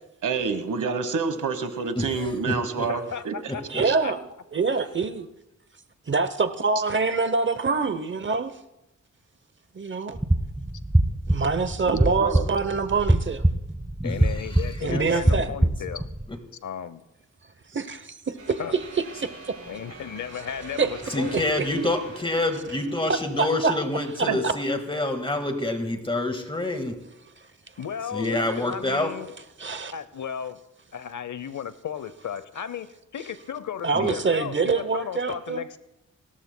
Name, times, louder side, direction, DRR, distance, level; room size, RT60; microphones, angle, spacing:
voice 1, 0.2-3.3 3.8-3.9 11.9-12.4 24.3-24.4, right 5 dB, 90° right, 10 dB, 1.3 m, -28 dB
voice 2, 2.0-2.9 3.7-3.8 14.0-15.0 16.3-16.4 21.1-27.0 28.1-29.1 33.9-34.2, left 2 dB, 15° left, 5 dB, 1.7 m, -27 dB
voice 3, 2.9-4.1 14.0-16.1 16.6-17.0 18.6-18.7 19.7-21.4 27.8-29.3 29.9-30.6 30.9-35.8, left 8 dB, 75° left, 14 dB, 0.8 m, -35 dB
voice 4, 3.7-4.3 4.5-5.3 6.1-8.5 9.7-10.2 11.3-13.5 14.8-15.5 17.7-18.6 19.5-19.6 20.8-20.9 21.3-21.4 23.6-23.7 24.4-24.5 29.6-29.9 33.8-35.6, right 4 dB, 40° right, 11 dB, 0.8 m, -25 dB
sound 1, 10.1-16.3, right 1 dB, 10° right, 0.8 m, -24 dB
sound 2, 18.4-23.9, right 3 dB, 55° right, 5.7 m, -44 dB
29.5 x 13.5 x 2.2 m, 0.92 s
wide cardioid pair, 120°, 30 cm